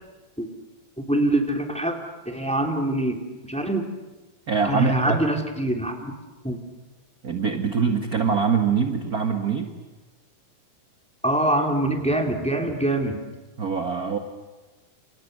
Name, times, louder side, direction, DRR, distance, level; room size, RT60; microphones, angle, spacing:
voice 1, 1.0-2.0 2.2-3.2 3.5-3.9 4.7-6.1 6.4-6.6 11.2-13.2, right 1 dB, ahead, 2 dB, 2.7 m, -24 dB
voice 2, 4.5-5.2 7.2-9.7 13.6-14.2, right 5 dB, 40° right, 4 dB, 1.4 m, -23 dB
29.5 x 28.5 x 6.7 m, 1.2 s
omnidirectional pair, 3.9 m